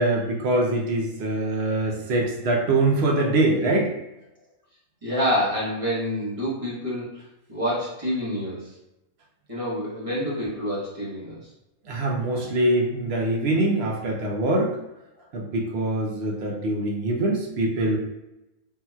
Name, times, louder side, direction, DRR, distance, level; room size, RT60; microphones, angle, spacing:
voice 1, 0.0-3.9 11.9-14.8 15.3-18.0, right 2 dB, 60° right, -1 dB, 0.7 m, -23 dB
voice 2, 5.0-7.1 7.5-8.7 9.5-11.4, equal, 25° right, -7 dB, 0.9 m, -27 dB
3.6 x 2.8 x 2.3 m, 0.93 s
omnidirectional pair, 1.5 m